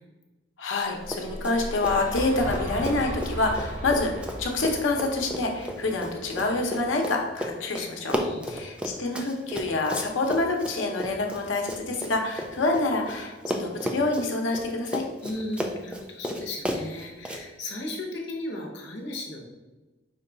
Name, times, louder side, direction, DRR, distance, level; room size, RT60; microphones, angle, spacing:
voice 1, 0.6-8.2 8.5-15.0, left 2 dB, 90° left, 2 dB, 0.8 m, -27 dB
sound 1, 0.9-7.0, equal, 40° right, 1.3 m, -37 dB
Run, 1.0-1.6 1.8-13.2 13.5-17.4, equal, 5° right, 0.4 m, -33 dB
voice 2, 8.2-8.5 15.2-19.4, left 1 dB, 65° left, 0 dB, 1.0 m, -36 dB
5.2 x 2.3 x 3.8 m, 1.1 s
head